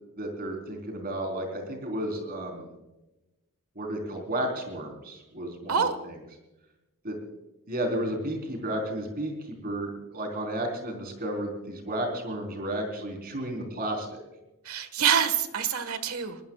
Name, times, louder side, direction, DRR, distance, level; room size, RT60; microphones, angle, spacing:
voice 1, 0.2-2.7 3.8-6.1 7.0-7.2 7.7-9.3 9.6-14.2, right 1 dB, 45° right, 3 dB, 4.3 m, -32 dB
voice 2, 14.7-16.4, right 7 dB, 90° right, 11 dB, 1.6 m, -26 dB
21.5 x 20.0 x 2.4 m, 1.0 s
head